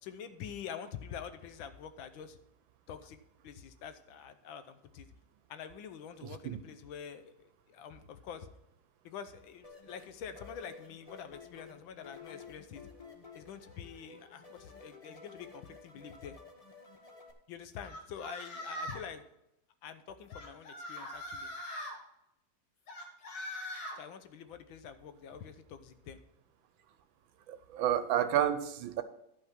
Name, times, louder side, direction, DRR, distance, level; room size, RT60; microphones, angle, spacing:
voice 1, 0.0-2.4 2.9-3.2 3.4-5.1 5.5-8.5 9.0-12.8 13.3-16.4 17.5-19.2 19.8-21.5 24.0-26.2, left 8 dB, 80° left, 11 dB, 1.6 m, -46 dB
voice 2, 6.2-6.6 27.5-29.0, right 10 dB, 80° right, 12 dB, 1.5 m, -30 dB
sound 1, 9.6-17.3, left 5 dB, 25° left, 0.9 m, -53 dB
sound 2, 17.8-19.1 20.3-21.9 22.9-24.0, equal, 65° left, 2.1 m, -41 dB
11.0 x 5.8 x 5.9 m, 0.84 s
omnidirectional pair, 2.1 m